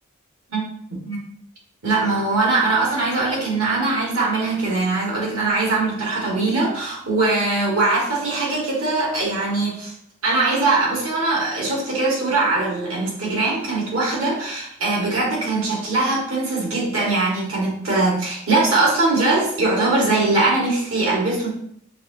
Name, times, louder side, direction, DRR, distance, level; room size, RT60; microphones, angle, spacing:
voice 1, 0.5-1.2 1.8-9.9 10.2-21.5, right 3 dB, 80° right, -4 dB, 1.9 m, -21 dB
6.3 x 2.9 x 2.8 m, 0.68 s
head